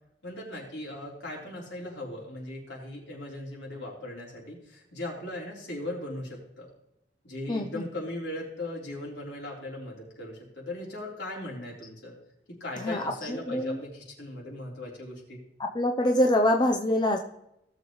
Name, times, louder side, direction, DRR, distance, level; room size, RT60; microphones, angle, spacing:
voice 1, 0.2-6.7 7.2-12.1 12.6-15.4, left 1 dB, 80° left, -3 dB, 3.7 m, -38 dB
voice 2, 7.5-7.9 12.8-13.8 15.6-17.2, left 1 dB, 25° left, 2 dB, 0.6 m, -25 dB
17.0 x 6.8 x 3.1 m, 0.83 s
head